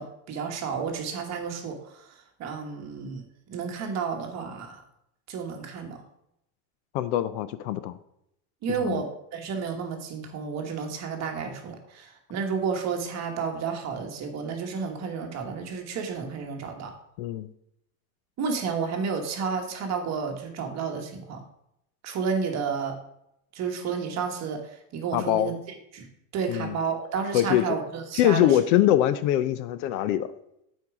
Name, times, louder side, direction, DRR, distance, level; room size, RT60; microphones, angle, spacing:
voice 1, 0.0-2.0 2.4-3.2 3.5-4.8 5.3-6.0 8.6-16.9 18.4-21.4 22.0-22.9 23.5-24.6 24.9-25.6 25.9-26.1 26.3-28.5, right 5 dB, 30° right, 3 dB, 1.3 m, -31 dB
voice 2, 6.9-8.0 8.8-9.0 17.2-17.5 25.1-25.5 26.5-26.8 27.3-27.6 28.2-30.3, left 12 dB, 60° left, 14 dB, 0.5 m, -23 dB
8.3 x 4.6 x 4.8 m, 0.79 s
supercardioid pair, 155°, 50 cm